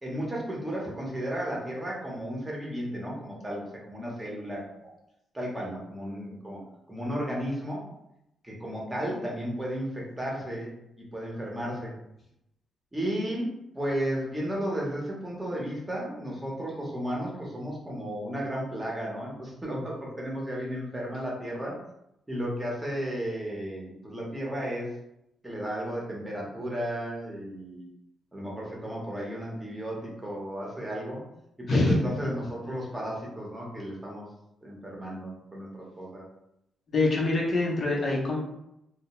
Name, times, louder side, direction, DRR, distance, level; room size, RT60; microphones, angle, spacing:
voice 1, 0.0-4.9 5.3-6.6 6.9-7.9 8.4-11.9 12.9-21.8 22.3-24.9 25.4-27.9 28.3-31.2 31.6-34.3 34.6-36.2, equal, 15° right, -3 dB, 0.8 m, -34 dB
voice 2, 31.7-32.0 36.9-38.4, left 2 dB, 50° left, -2 dB, 0.6 m, -24 dB
2.2 x 2.0 x 2.9 m, 0.82 s
cardioid pair, 80°, 0 cm